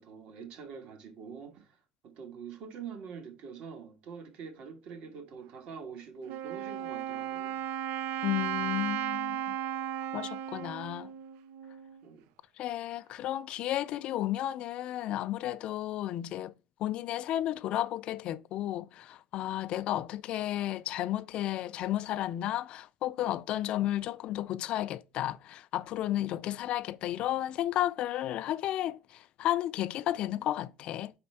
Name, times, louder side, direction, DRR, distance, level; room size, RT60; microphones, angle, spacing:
voice 1, 0.0-1.8 2.1-7.6 12.0-12.2, right 6 dB, 65° right, 1.7 m, -45 dB
Wind instrument woodwind instrument, 6.3-12.0, right 10 dB, 85° right, 0.5 m, -35 dB
voice 2, 8.2-9.6 10.1-11.1 12.6-16.5 16.8-31.1, left 13 dB, 60° left, 0.4 m, -33 dB
5.3 x 4.2 x 5.6 m
cardioid pair, 130°, 2 cm